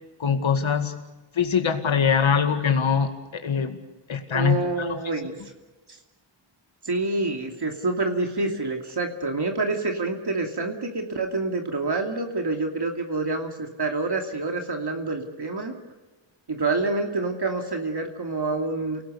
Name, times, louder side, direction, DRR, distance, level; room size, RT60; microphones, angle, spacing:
voice 1, 0.2-1.0 1.3-3.8 4.1-5.0, left 6 dB, 70° left, 6 dB, 2.2 m, -23 dB
voice 2, 4.3-5.3 5.9-6.0 6.8-15.8 16.5-19.0, right 3 dB, 50° right, 3 dB, 2.8 m, -27 dB
29.5 x 18.0 x 6.8 m, 1.2 s
cardioid pair, 70°, 50 cm